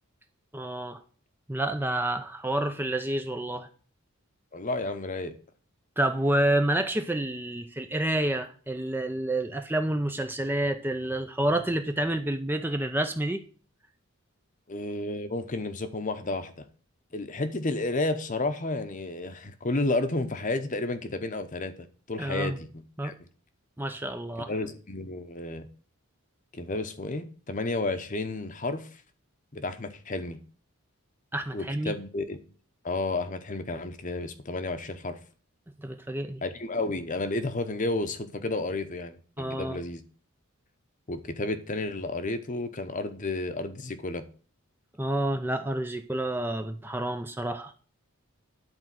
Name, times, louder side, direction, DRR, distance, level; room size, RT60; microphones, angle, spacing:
voice 1, 0.5-1.0 1.5-3.7 6.0-13.4 22.2-22.6 23.0-23.1 23.8-24.5 31.3-31.9 35.8-36.4 39.4-39.8 45.0-47.7, right 1 dB, 10° right, 0.6 m, -29 dB
voice 2, 4.5-5.3 14.7-16.6 17.1-22.7 23.0-23.1 24.5-25.7 26.5-28.9 29.5-30.4 31.5-32.4 32.8-35.2 36.4-40.0 41.1-44.2, left 2 dB, 35° left, 0.9 m, -31 dB
11.0 x 4.5 x 7.6 m
head